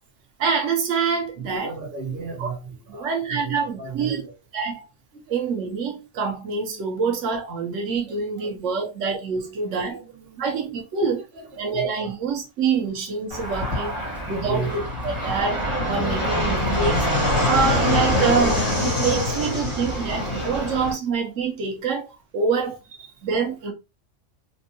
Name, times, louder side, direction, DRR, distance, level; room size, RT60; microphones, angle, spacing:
voice 1, 0.4-1.7 2.4-2.5 2.9-4.2 4.5-4.8 5.3-10.0 10.4-11.2 11.6-13.9 14.3-17.1 17.5-22.8 23.2-23.7, right 5 dB, 85° right, 1.1 m, -26 dB
voice 2, 1.4-4.3 5.1-5.5 8.1-8.5 9.9-10.4 11.0-12.2 13.3-13.4 14.0-14.7 16.0-16.3 17.4-17.6 18.9-19.4 19.7-19.8 20.5-20.7 23.0-23.2, right 5 dB, 55° right, 1.3 m, -36 dB
Fixed-wing aircraft airplane, 13.3-20.9, left 1 dB, 25° left, 1.8 m, -24 dB
4.2 x 2.6 x 2.7 m
omnidirectional pair, 1.3 m